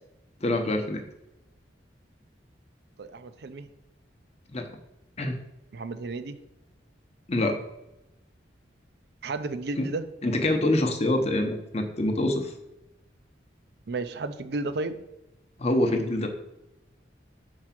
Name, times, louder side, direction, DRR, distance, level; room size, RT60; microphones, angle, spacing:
voice 1, 0.4-1.0 4.5-4.7 5.2-5.4 7.3-7.6 9.8-9.9 10.2-12.5 15.6-16.3, left 1 dB, 35° left, 5 dB, 0.8 m, -25 dB
voice 2, 3.0-3.7 5.7-6.4 9.2-10.0 13.9-15.0, right 3 dB, 60° right, 10 dB, 0.5 m, -33 dB
4.7 x 4.7 x 5.8 m, 0.92 s
head